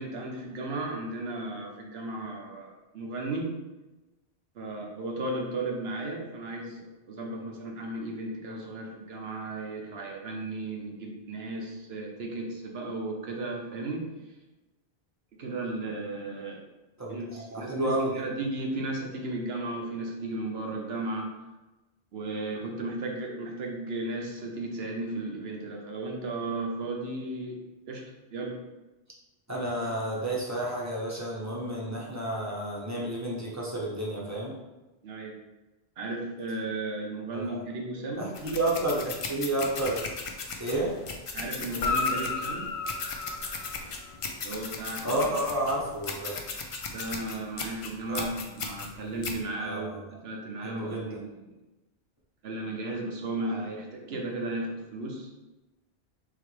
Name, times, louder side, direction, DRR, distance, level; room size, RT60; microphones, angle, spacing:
voice 1, 0.0-3.5 4.5-14.0 15.4-16.6 17.1-21.3 22.1-27.6 27.9-28.0 28.3-28.5 35.0-35.3 36.0-38.3 41.3-42.7 44.4-45.2 46.9-51.3 52.4-55.3, right 2 dB, 70° right, 0 dB, 1.0 m, -35 dB
voice 2, 17.5-18.2 29.5-34.6 37.3-37.6 38.2-40.0 40.6-41.0 45.0-46.4 48.1-48.2 49.6-50.2 50.6-51.1, right 1 dB, 15° right, -5 dB, 0.8 m, -31 dB
sound 1, 38.3-49.4, left 4 dB, 60° left, 0.3 m, -37 dB
Guitar, 41.7-44.3 48.2-48.3, left 3 dB, 90° left, 0.9 m, -32 dB
3.9 x 3.2 x 3.2 m, 1.1 s
omnidirectional pair, 1.1 m